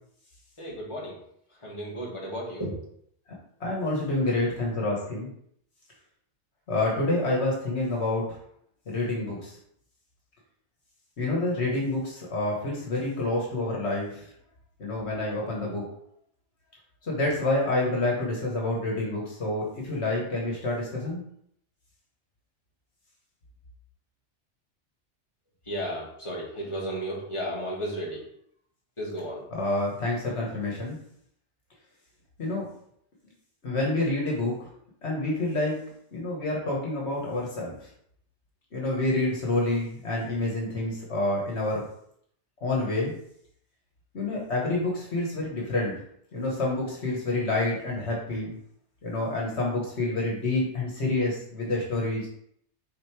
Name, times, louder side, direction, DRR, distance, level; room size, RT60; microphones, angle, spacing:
voice 1, 0.6-1.2 1.6-2.8 25.7-28.2 29.0-29.4, equal, 25° left, -5 dB, 1.9 m, -33 dB
voice 2, 3.6-5.3 6.7-8.2 8.9-9.6 11.2-14.3 14.8-15.8 17.0-21.2 29.5-31.0 32.4-32.7 33.6-34.7 35.0-35.8 36.1-37.9 38.7-41.9 42.6-43.2 44.1-45.9 46.3-48.5 49.0-52.3, left 2 dB, 65° left, -2 dB, 1.6 m, -28 dB
5.2 x 3.9 x 4.7 m, 0.68 s
omnidirectional pair, 1.2 m